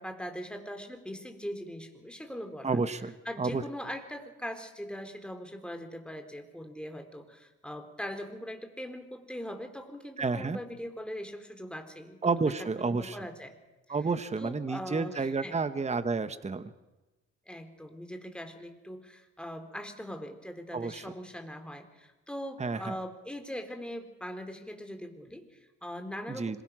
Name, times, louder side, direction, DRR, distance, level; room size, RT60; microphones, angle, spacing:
voice 1, 0.0-2.8 3.3-12.5 12.9-13.6 14.4-15.6 17.5-26.6, equal, 5° left, 6 dB, 3.7 m, -41 dB
voice 2, 2.6-3.6 10.2-10.6 12.2-13.2 13.9-16.7 20.7-21.0 22.6-23.0 26.4-26.6, right 4 dB, 20° right, 11 dB, 1.3 m, -30 dB
26.0 x 22.0 x 6.2 m, 1.1 s
cardioid pair, 90°, 30 cm